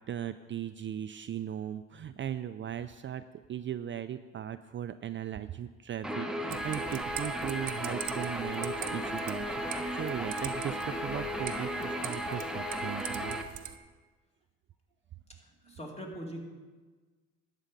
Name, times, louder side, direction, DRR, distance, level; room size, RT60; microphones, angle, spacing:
voice 1, 0.1-3.2 3.5-13.4 15.7-15.8, right 10 dB, 40° right, 10 dB, 0.4 m, -38 dB
Guitar, 6.0-13.4, equal, ahead, 0.9 m, -35 dB
sound 1, 6.5-13.8, right 10 dB, 75° right, 0.9 m, -43 dB
voice 2, 15.3-16.5, equal, 20° left, 0 dB, 2.3 m, -42 dB
11.5 x 8.2 x 5.3 m, 1.4 s
cardioid pair, 90°, 30 cm